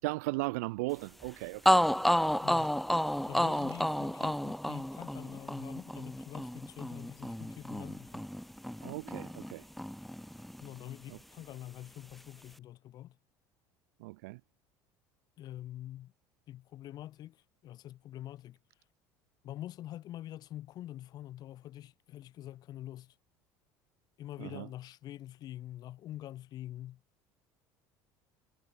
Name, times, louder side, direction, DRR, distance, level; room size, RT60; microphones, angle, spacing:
voice 1, 0.0-1.9 8.8-9.7 11.1-11.2 14.0-14.4 24.4-24.7, right 24 dB, 90° right, 0.9 m, -37 dB
sound 1, 1.2-1.3 1.6-9.5 9.8-10.9, equal, ahead, 0.6 m, -31 dB
voice 2, 2.4-2.7 3.3-8.3 10.6-13.2 15.4-16.1 16.5-17.4 17.6-18.6 19.4-23.1 24.2-27.0, left 13 dB, 55° left, 1.5 m, -45 dB
supercardioid pair, 105°, 8 cm